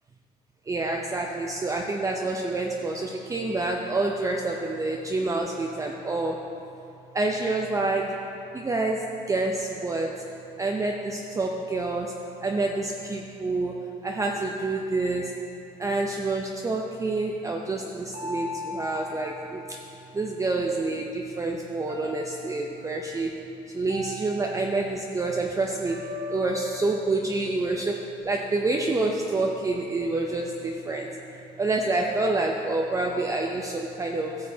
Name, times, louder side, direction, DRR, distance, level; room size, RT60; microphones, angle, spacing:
voice 1, 0.7-6.4 7.1-8.2 8.5-10.2 10.6-12.2 12.4-15.4 15.8-19.6 20.1-23.4 23.7-26.0 26.3-27.9 28.2-31.1 31.6-34.4, right 2 dB, 20° right, 0 dB, 0.5 m, -27 dB
sound 1, 18.1-20.5 21.9-22.9 23.9-25.2 25.8-28.2, left 2 dB, 70° right, 1.5 m, -40 dB
14.5 x 6.5 x 2.8 m, 2.8 s
cardioid pair, 110°, 17 cm